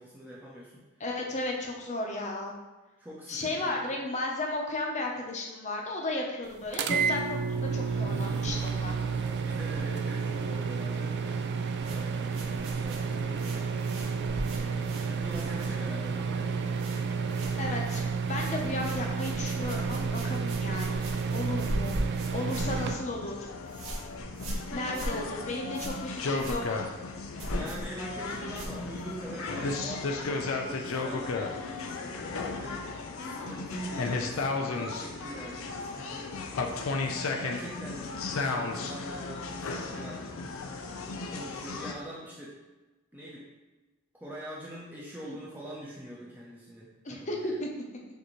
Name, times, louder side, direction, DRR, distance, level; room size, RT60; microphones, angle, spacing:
voice 1, 0.0-0.8 3.0-3.9 9.4-11.5 11.8-13.7 14.5-17.0 25.0-25.3 27.5-32.8 33.2-36.4 37.3-40.2 41.3-42.5 43.1-43.5 44.2-47.6, equal, 10° right, -6 dB, 0.6 m, -43 dB
voice 2, 1.0-2.5 3.3-9.0 17.6-18.0 18.3-22.0 22.3-23.5 24.7-26.8 33.2-33.5 45.2-45.4 47.0-47.7, left 2 dB, 35° left, 0 dB, 0.7 m, -34 dB
sound 1, 6.7-22.9, right 5 dB, 55° right, 0.3 m, -31 dB
sound 2, 11.8-16.1 16.4-17.0 17.3-29.2, right 1 dB, 75° right, 0.9 m, -39 dB
sound 3, 22.5-41.9, left 3 dB, 75° left, 0.5 m, -35 dB
6.5 x 2.6 x 3.1 m, 1.2 s
head